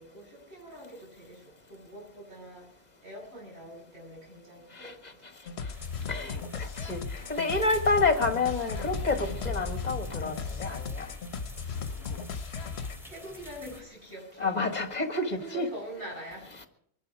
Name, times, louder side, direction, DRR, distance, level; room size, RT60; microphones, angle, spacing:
voice 1, 0.0-1.4 1.7-2.7 3.0-4.9 5.7-5.8 13.0-14.5 15.3-16.5, right 1 dB, 85° right, -3 dB, 8.5 m, -44 dB
voice 2, 4.7-5.1 5.6-5.7 6.1-11.1 14.4-15.7 16.6-16.7, left 3 dB, 40° left, 7 dB, 1.9 m, -29 dB
sound 1, 5.5-13.0, left 5 dB, 80° left, 1.2 m, -37 dB
sound 2, 5.7-13.8, left 2 dB, ahead, 2.8 m, -44 dB
23.5 x 12.0 x 4.9 m, 0.68 s
omnidirectional pair, 1.1 m